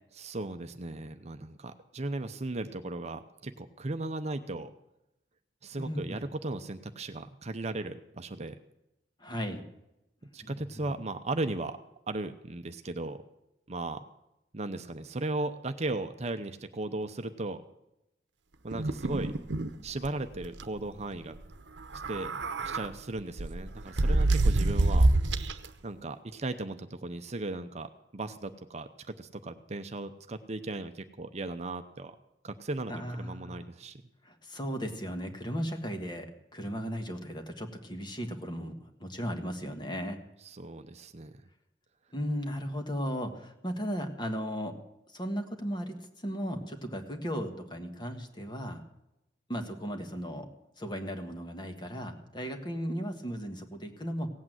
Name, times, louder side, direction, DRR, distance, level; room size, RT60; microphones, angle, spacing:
voice 1, 0.2-4.7 5.6-8.5 10.3-11.8 12.1-13.2 13.7-14.0 14.5-17.6 18.6-19.3 19.8-21.4 22.1-22.3 22.6-25.1 25.4-32.1 32.4-34.0 40.4-41.4, right 2 dB, 35° right, 8 dB, 0.7 m, -36 dB
voice 2, 5.8-6.2 9.2-9.6 10.4-10.9 32.9-33.6 34.2-36.3 36.5-38.7 39.0-40.2 42.1-44.7 45.1-46.0 46.2-48.8 49.5-50.5 50.8-54.3, equal, 25° left, 5 dB, 1.6 m, -36 dB
sound 1, 18.7-19.7 20.0-20.1 20.4-20.6 21.8-22.9 23.4-25.7, right 2 dB, 75° right, 0.9 m, -26 dB
17.0 x 8.7 x 7.6 m, 0.88 s
head